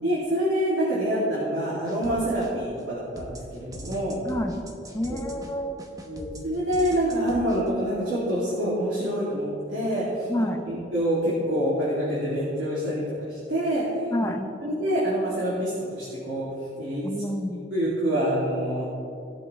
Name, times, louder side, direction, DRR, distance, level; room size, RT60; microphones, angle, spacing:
voice 1, 0.0-4.2 5.1-5.2 6.1-13.0 13.3-13.8 14.2-14.3 14.6-16.5 16.8-17.0 17.7-18.8, equal, 75° right, -9 dB, 2.9 m, -26 dB
sound 1, 1.9-2.8 3.2-7.7, right 1 dB, 20° right, 1.0 m, -42 dB
voice 2, 4.2-4.6 4.9-5.8 10.3-10.6 14.1-14.4 17.0-17.6, left 1 dB, 15° left, 4 dB, 0.8 m, -29 dB
19.0 x 7.0 x 3.4 m, 2.6 s
head